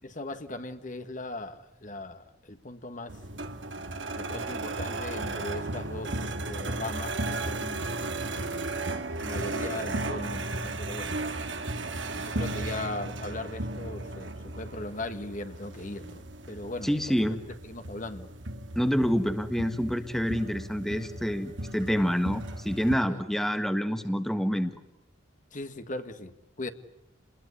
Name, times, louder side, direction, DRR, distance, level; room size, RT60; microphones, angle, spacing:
voice 1, 0.0-3.2 4.1-7.9 8.5-8.7 9.2-11.2 12.1-17.2 17.6-18.3 23.1-23.2 25.5-26.7, left 2 dB, 40° left, 1.7 m, -39 dB
sound 1, 3.1-22.9, right 2 dB, 70° right, 2.1 m, -35 dB
voice 2, 16.8-17.4 18.7-24.7, equal, ahead, 1.5 m, -27 dB
29.0 x 21.0 x 9.8 m
head